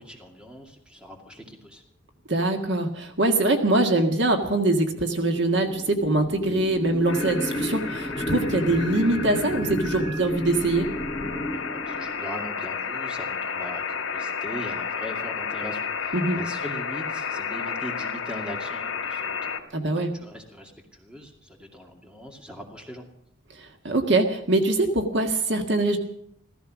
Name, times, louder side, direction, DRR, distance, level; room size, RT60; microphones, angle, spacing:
voice 1, 0.0-1.8 11.5-19.5 20.0-23.0, equal, 5° right, 2 dB, 2.3 m, -40 dB
voice 2, 2.3-10.9 16.1-16.4 19.7-20.1 23.8-26.0, right 2 dB, 60° right, 5 dB, 1.7 m, -23 dB
sound 1, 4.1-12.5, equal, 20° left, 1.3 m, -33 dB
sound 2, 7.1-19.6, left 6 dB, 75° left, 2.3 m, -32 dB
15.5 x 15.0 x 6.2 m, 0.72 s
head